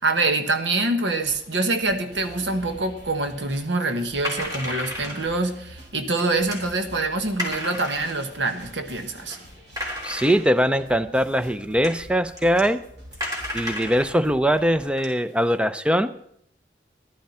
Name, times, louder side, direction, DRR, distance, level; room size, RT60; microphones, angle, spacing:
voice 1, 0.0-9.4, right 2 dB, 90° right, 7 dB, 1.3 m, -25 dB
sound 1, 1.2-14.8, equal, 75° right, 5.1 m, -47 dB
sound 2, 4.2-5.3 6.2-6.6 7.4-8.2 8.9-9.0 9.3-9.4 9.8-10.7 11.5-11.6 11.8-12.0 12.4-12.6 13.1-14.1 14.6-14.7 15.0-15.6, left 1 dB, 20° right, 3.2 m, -32 dB
voice 2, 10.0-12.8 13.5-16.1, equal, 5° right, 12 dB, 0.5 m, -21 dB
14.5 x 11.5 x 4.3 m, 0.71 s
head